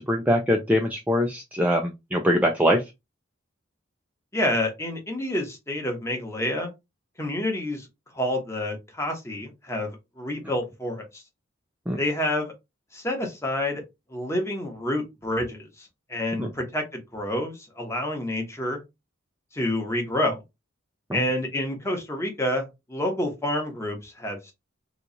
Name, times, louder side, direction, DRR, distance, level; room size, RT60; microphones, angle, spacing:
voice 1, 0.0-2.8 11.9-12.0 16.4-16.5 21.1-21.2, equal, 10° right, 0.4 m, -23 dB
voice 2, 4.3-6.7 7.2-7.9 8.1-11.2 12.0-12.5 12.9-13.8 14.1-18.8 19.5-20.4 21.1-24.5, left 1 dB, 15° left, 0.9 m, -28 dB
3.0 x 2.3 x 3.8 m
head